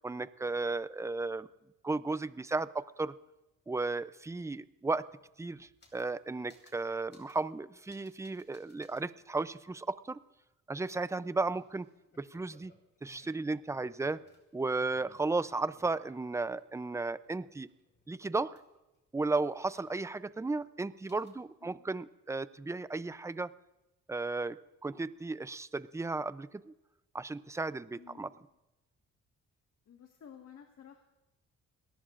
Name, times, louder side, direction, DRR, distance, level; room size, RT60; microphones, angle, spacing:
voice 1, 0.0-1.5 1.8-3.1 3.7-5.1 5.4-10.2 10.7-11.9 12.2-12.7 13.0-14.2 14.5-17.7 18.1-18.6 19.1-23.5 24.1-24.6 24.8-26.7 27.1-28.3, right 3 dB, 10° right, 15 dB, 0.5 m, -34 dB
sound 1, 5.0-6.2 6.5-6.8 7.1-7.5 7.9-9.0 9.5-9.6 10.9-16.6 17.0-19.0 19.4-20.3 20.6-20.7 21.1-21.4, left 2 dB, 35° left, 4.9 m, -65 dB
voice 2, 27.9-28.5 29.8-31.0, left 8 dB, 60° left, 4 dB, 1.7 m, -54 dB
27.0 x 18.5 x 2.5 m, 0.99 s
cardioid pair, 90°, 30 cm